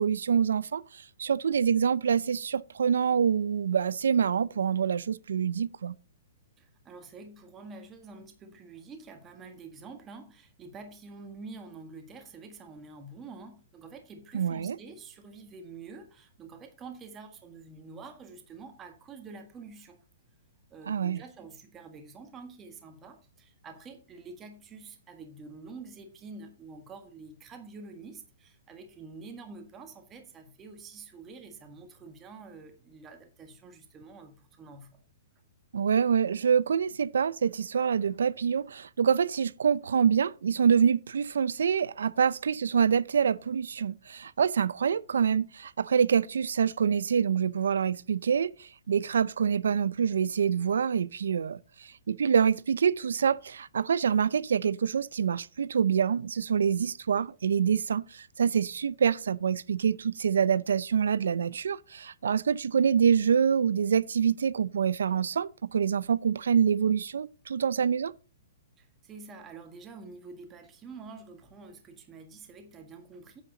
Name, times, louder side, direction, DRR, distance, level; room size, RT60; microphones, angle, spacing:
voice 1, 0.0-5.9 14.3-14.8 20.9-21.2 35.7-51.6 52.1-68.1, right 7 dB, 85° right, 0.5 m, -26 dB
voice 2, 6.6-20.0 20.7-35.0 68.8-73.4, right 4 dB, 20° right, 1.5 m, -47 dB
9.5 x 7.4 x 3.9 m
hypercardioid pair, 150°, 0 cm